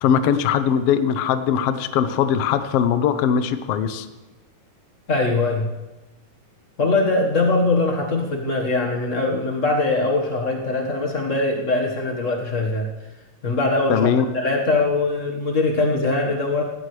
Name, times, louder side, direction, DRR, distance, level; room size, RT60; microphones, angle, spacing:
voice 1, 0.0-4.1 13.9-14.2, left 8 dB, 85° left, 10 dB, 1.3 m, -20 dB
voice 2, 5.1-5.7 6.8-12.9 13.4-14.1 14.3-16.6, left 2 dB, 65° left, 0 dB, 0.7 m, -21 dB
17.5 x 16.0 x 3.3 m, 1.1 s
omnidirectional pair, 3.9 m